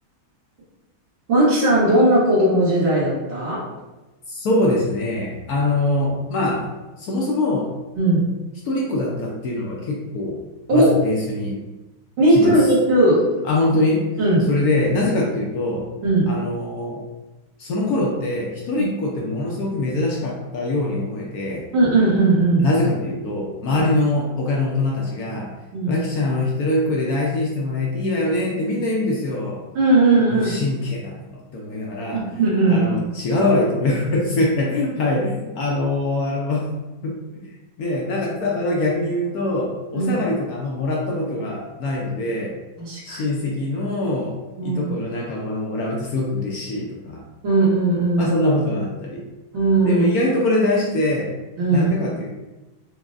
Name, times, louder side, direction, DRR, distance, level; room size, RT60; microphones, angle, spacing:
voice 1, 1.3-3.6 8.0-8.2 10.7-11.0 12.2-13.2 14.2-14.4 16.0-16.3 21.7-22.6 25.7-26.0 29.8-30.5 32.1-33.0 39.9-40.1 42.8-43.2 44.6-44.8 47.4-48.3 49.5-50.0 51.6-51.9, right 2 dB, 85° right, -12 dB, 1.9 m, -17 dB
voice 2, 4.3-7.7 8.6-10.4 10.7-11.5 12.3-12.7 13.4-14.0 14.5-15.9 16.3-17.0 17.6-21.6 22.6-25.5 25.9-29.6 30.2-32.2 32.7-36.7 37.0-37.1 37.8-42.6 43.0-44.4 44.6-47.2 48.2-49.2 49.8-51.3 51.7-52.3, left 2 dB, 80° left, -2 dB, 0.8 m, -23 dB
5.8 x 2.0 x 2.5 m, 1.1 s
omnidirectional pair, 2.2 m